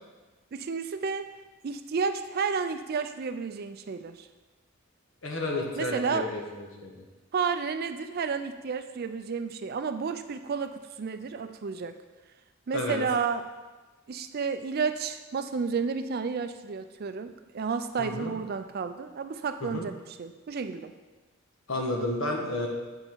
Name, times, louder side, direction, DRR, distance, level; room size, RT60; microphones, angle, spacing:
voice 1, 0.5-1.3 1.6-4.3 5.8-6.3 7.3-12.0 12.7-13.5 14.1-20.9, right 5 dB, 50° right, 9 dB, 0.4 m, -31 dB
voice 2, 5.2-7.0 12.7-13.0 18.0-18.3 19.6-19.8 21.7-22.7, left 1 dB, 70° left, 1 dB, 1.3 m, -31 dB
7.9 x 5.5 x 4.5 m, 1.2 s
head